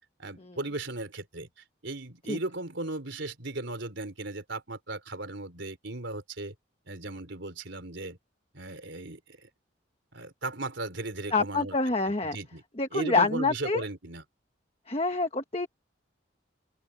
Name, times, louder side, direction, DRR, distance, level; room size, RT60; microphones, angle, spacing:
voice 1, 0.2-1.5 1.8-6.5 6.9-8.2 8.5-9.5 10.1-11.8 12.2-12.6 12.9-14.2, right 2 dB, 70° right, 3.8 m, -36 dB
voice 2, 11.3-12.4 12.8-13.8 14.9-15.7, left 3 dB, 30° left, 1.3 m, -27 dB
open air
head